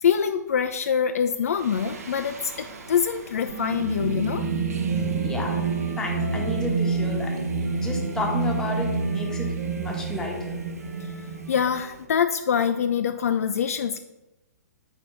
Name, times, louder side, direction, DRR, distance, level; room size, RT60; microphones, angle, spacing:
voice 1, 0.0-4.4 11.5-14.0, left 7 dB, 60° left, 8 dB, 0.3 m, -24 dB
Singing, 1.6-12.0, right 4 dB, 65° right, 0.8 m, -29 dB
Wind instrument woodwind instrument, 2.5-7.2 7.7-12.6, right 3 dB, 80° right, 1.7 m, -46 dB
Bass guitar, 3.5-7.8 8.1-9.7, right 9 dB, 80° left, 1.1 m, -43 dB
voice 2, 5.2-5.6 6.0-7.4 7.8-10.5, left 2 dB, 5° left, -1 dB, 1.1 m, -32 dB
4.5 x 4.4 x 5.3 m, 0.98 s
figure-of-eight pair, 115°, 9 cm